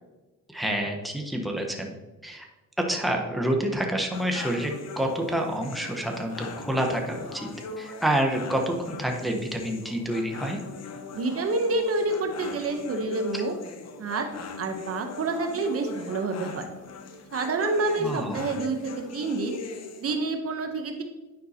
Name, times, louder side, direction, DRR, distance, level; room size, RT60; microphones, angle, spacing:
voice 1, 0.5-1.9 2.2-2.4 2.8-7.5 7.8-10.6 13.3-13.4 18.0-18.5, right 1 dB, ahead, 1 dB, 1.1 m, -28 dB
sound 1, 4.1-20.1, left 4 dB, 60° left, 0.9 m, -40 dB
voice 2, 11.1-13.5 14.0-14.3 14.6-16.7 17.3-19.6 20.0-21.0, right 3 dB, 50° right, 5 dB, 1.0 m, -28 dB
9.7 x 5.5 x 2.9 m, 1.1 s
cardioid pair, 90°, 30 cm